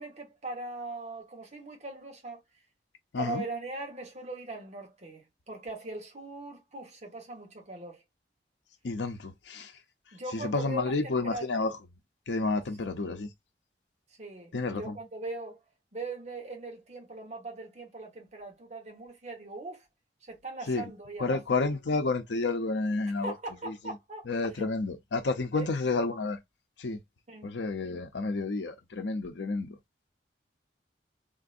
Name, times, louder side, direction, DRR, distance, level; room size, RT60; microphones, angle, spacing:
voice 1, 0.0-2.4 3.2-8.0 10.1-11.5 14.2-15.6 15.9-19.9 20.3-21.4 23.2-24.2 24.5-24.7 25.5-25.7 27.3-27.5, right 2 dB, 40° right, 1.2 m, -40 dB
voice 2, 8.8-9.7 10.3-11.8 12.3-13.3 14.5-14.9 20.7-20.9 21.2-23.3 23.7-23.8 24.3-26.4 26.8-27.0 27.4-29.8, left 3 dB, 80° left, 0.7 m, -30 dB
3.7 x 2.6 x 2.5 m
head